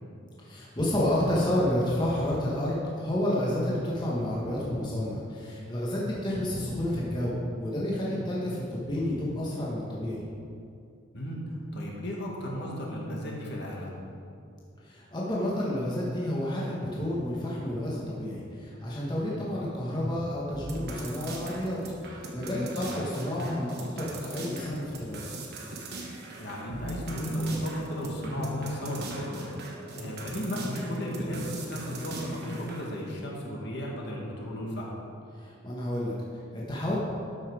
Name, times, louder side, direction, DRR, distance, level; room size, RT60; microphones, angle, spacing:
voice 1, 0.4-10.2 14.8-21.8 22.0-25.4 35.3-37.0, left 1 dB, 20° left, -5 dB, 1.3 m, -30 dB
voice 2, 11.7-13.9 19.3-19.5 22.8-23.0 26.4-29.5 29.9-34.9, equal, 55° left, -2 dB, 1.7 m, -35 dB
sound 1, 20.5-32.9, right 2 dB, 50° right, 1.3 m, -41 dB
sound 2, 26.8-33.0, equal, 85° left, 1.3 m, -38 dB
12.5 x 5.7 x 4.9 m, 2.5 s
head